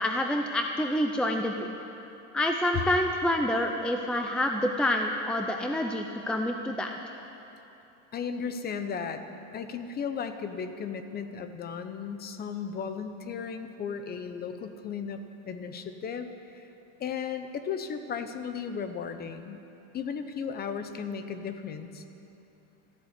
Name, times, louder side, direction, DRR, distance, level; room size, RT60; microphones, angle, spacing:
voice 1, 0.0-1.7 2.3-6.9, left 1 dB, 5° left, 3 dB, 0.5 m, -27 dB
voice 2, 8.1-9.2 9.5-16.6 17.0-19.6 19.9-22.0, left 6 dB, 25° left, 9 dB, 0.9 m, -35 dB
14.0 x 12.0 x 8.3 m, 2.9 s
cardioid pair, 150°, 35 cm